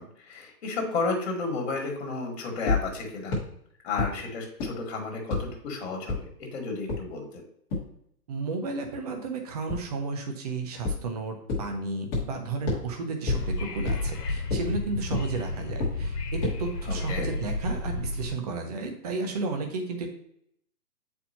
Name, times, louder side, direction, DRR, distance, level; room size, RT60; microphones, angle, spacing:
voice 1, 0.0-3.4 3.8-7.4 16.9-17.3, left 3 dB, 45° left, 2 dB, 1.7 m, -32 dB
sound 1, 2.7-2.8 3.3-3.4 4.0-4.1 4.6-4.7 5.3-5.4 6.1-6.2 6.9-7.0 7.7-7.8 9.7-9.8 10.9-11.0 11.5-11.6 12.1-12.2 12.7-12.8 13.3-13.4 13.9-14.0 14.5-14.6 15.1-15.2 15.8-15.9 16.4-16.5, left 3 dB, 15° left, 1.2 m, -26 dB
voice 2, 8.3-20.1, right 3 dB, 25° right, 3 dB, 0.7 m, -33 dB
Wind / Subway metro underground, 13.3-18.3, left 2 dB, 75° left, 1.3 m, -32 dB
7.8 x 4.5 x 2.8 m, 0.70 s
hypercardioid pair, 160°, 47 cm